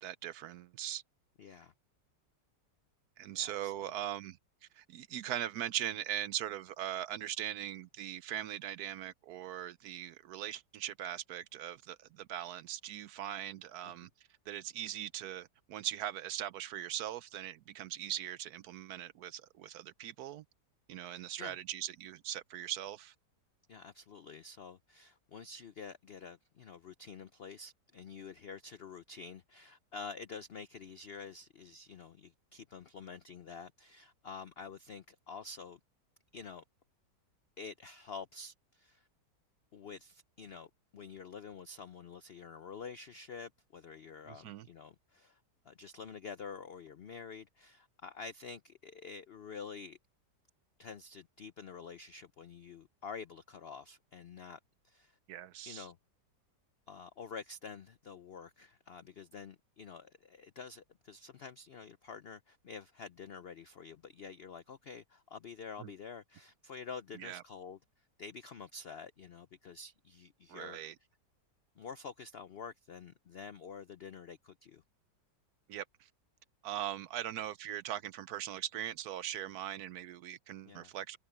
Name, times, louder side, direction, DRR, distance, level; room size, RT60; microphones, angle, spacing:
voice 1, 0.0-1.0 3.2-4.4 4.7-14.1 14.5-20.4 20.9-23.1 44.3-44.7 55.3-55.9 65.8-65.9 67.2-67.4 70.5-70.9 75.7-76.1 76.6-81.2, right 11 dB, 70° right, 1.0 m, -40 dB
voice 2, 1.4-1.7 3.3-3.7 21.0-21.6 23.7-35.8 36.3-36.6 37.6-39.1 39.7-45.4 45.6-50.0 50.8-54.6 54.8-55.2 55.7-56.0 56.9-67.8 68.2-70.8 71.8-74.8 80.6-80.9, left 5 dB, 80° left, 0.5 m, -48 dB
omnidirectional pair, 1.9 m